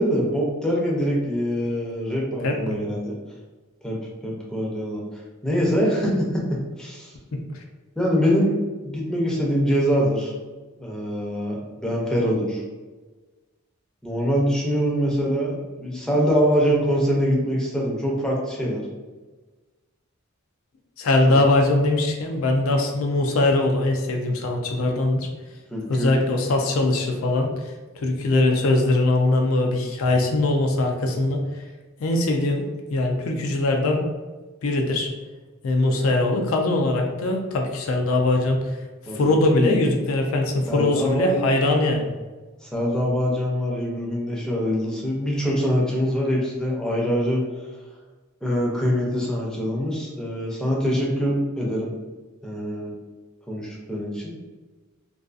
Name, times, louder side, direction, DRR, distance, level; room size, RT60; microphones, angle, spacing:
voice 1, 0.0-3.2 3.8-3.9 4.2-5.0 5.4-7.1 8.0-10.3 10.8-12.6 14.0-18.8 21.3-21.4 25.7-26.1 39.0-39.8 40.7-41.4 42.6-47.4 48.4-51.9 52.4-52.9 53.5-54.3, equal, 5° left, -4 dB, 0.5 m, -24 dB
voice 2, 2.4-2.8 21.0-25.3 25.9-27.5 28.0-31.4 32.0-32.7 32.9-34.0 34.6-35.1 35.6-38.6 39.1-42.1, left 2 dB, 80° left, 3 dB, 0.4 m, -21 dB
2.5 x 2.3 x 2.4 m, 1.3 s
head